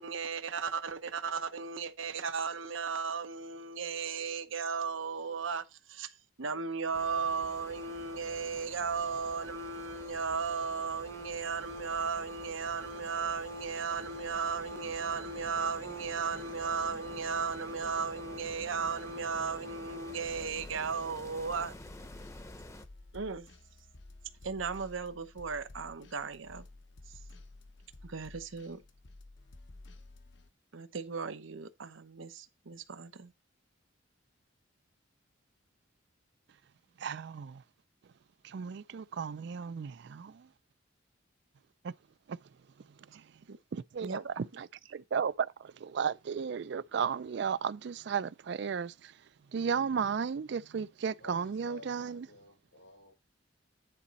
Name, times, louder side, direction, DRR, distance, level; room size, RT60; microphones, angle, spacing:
voice 1, 0.0-21.8 23.1-23.5 24.4-26.7 28.0-28.8 30.7-33.3 43.5-43.6 44.0-44.4, right 5 dB, 85° right, 0.8 m, -36 dB
sound 1, 6.9-22.8, left 1 dB, 15° left, 0.7 m, -50 dB
sound 2, 20.3-30.5, left 2 dB, 65° left, 0.9 m, -53 dB
voice 2, 37.0-37.6 38.4-40.5 41.8-41.9 42.3-42.4 43.0-43.3 43.7-49.2 49.5-52.3, right 6 dB, 60° right, 0.4 m, -34 dB
voice 3, 51.2-53.1, left 2 dB, 80° left, 5.4 m, -52 dB
10.0 x 4.1 x 4.1 m
head